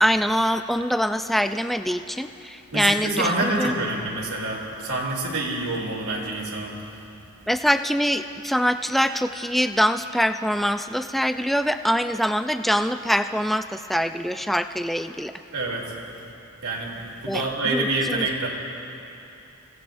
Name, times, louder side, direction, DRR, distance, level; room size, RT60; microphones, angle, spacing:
voice 1, 0.0-3.7 7.5-15.3 17.3-18.3, equal, ahead, 8 dB, 0.3 m, -24 dB
voice 2, 2.7-6.7 15.5-15.9 16.6-16.9 17.2-18.5, right 2 dB, 80° right, -2 dB, 2.9 m, -26 dB
29.0 x 16.5 x 2.6 m, 2.8 s
head